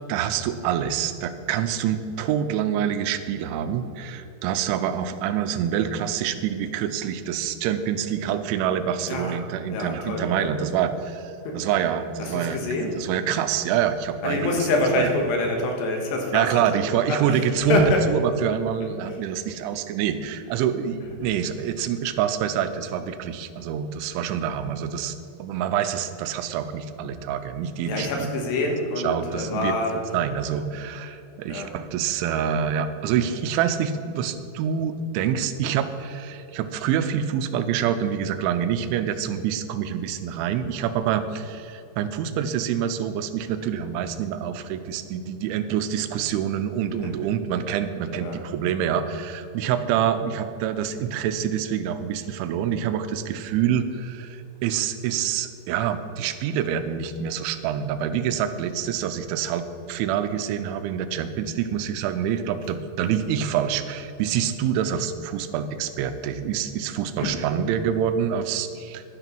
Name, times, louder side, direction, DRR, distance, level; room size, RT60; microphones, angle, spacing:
voice 1, 0.1-14.5 15.0-15.1 16.3-28.4 29.0-29.8 30.1-69.0, right 8 dB, 90° right, 10 dB, 3.1 m, -26 dB
voice 2, 9.1-9.4 9.7-10.8 11.5-11.6 12.2-13.0 14.2-16.5 16.9-17.0 17.3-18.0 27.8-30.0 31.5-31.7 48.1-48.4 67.2-67.3, left 2 dB, 70° left, 2 dB, 3.4 m, -26 dB
12.0 x 10.5 x 4.6 m, 2.8 s
omnidirectional pair, 5.3 m